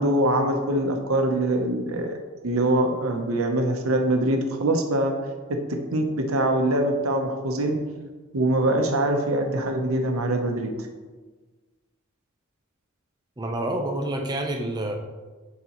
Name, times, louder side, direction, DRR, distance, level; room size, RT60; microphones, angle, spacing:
voice 1, 0.0-2.2 2.4-5.1 5.5-7.7 8.3-10.7, right 1 dB, 90° right, 4 dB, 0.8 m, -23 dB
voice 2, 13.4-15.0, right 1 dB, 20° right, 2 dB, 0.6 m, -28 dB
11.0 x 4.0 x 3.0 m, 1.3 s
head